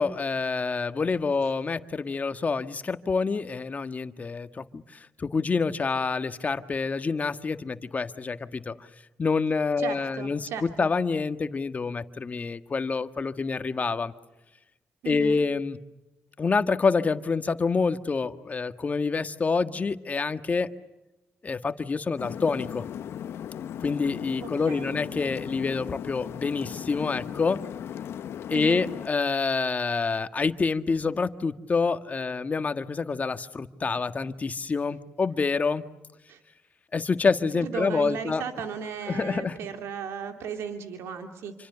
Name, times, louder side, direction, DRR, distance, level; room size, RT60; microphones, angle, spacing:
voice 1, 0.0-8.7 9.2-14.1 15.0-15.8 16.4-20.7 21.4-22.8 23.8-27.6 28.5-35.8 36.9-38.4 39.1-39.6, left 4 dB, 35° left, 9 dB, 1.7 m, -27 dB
voice 2, 9.8-10.9 15.0-15.4 24.4-25.0 28.5-28.9 36.3-36.4 37.5-41.5, right 6 dB, 85° right, 5 dB, 2.7 m, -36 dB
sound 1, 22.2-29.1, left 9 dB, 75° left, 1.0 m, -37 dB
28.0 x 26.0 x 6.9 m, 1.0 s
cardioid pair, 75°, 4 cm